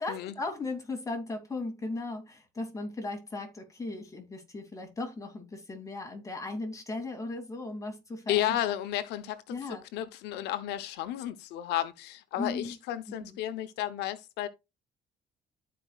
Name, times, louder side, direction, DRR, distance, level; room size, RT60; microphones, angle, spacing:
voice 1, 0.0-8.6 9.5-9.9 12.4-12.8 13.1-13.4, left 2 dB, 20° left, 2.9 m, -37 dB
voice 2, 8.3-9.4 9.9-14.5, left 12 dB, 85° left, 1.0 m, -32 dB
13.0 x 5.1 x 2.4 m
cardioid pair, 110°, 17 cm